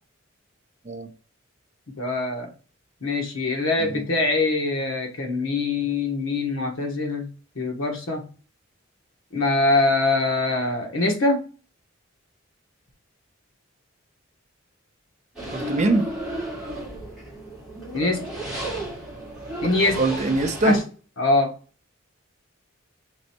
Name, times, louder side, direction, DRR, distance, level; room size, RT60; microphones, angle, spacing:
voice 1, 2.0-2.5 3.0-7.3 7.5-8.3 9.3-11.4 17.9-18.2 19.6-20.0 20.6-20.8 21.2-21.5, left 2 dB, 75° left, 1.1 m, -23 dB
sound 1, 15.4-20.8, right 1 dB, ahead, 1.9 m, -33 dB
voice 2, 15.5-16.1 20.0-20.8, right 2 dB, 35° right, 0.5 m, -22 dB
5.2 x 3.1 x 2.8 m
head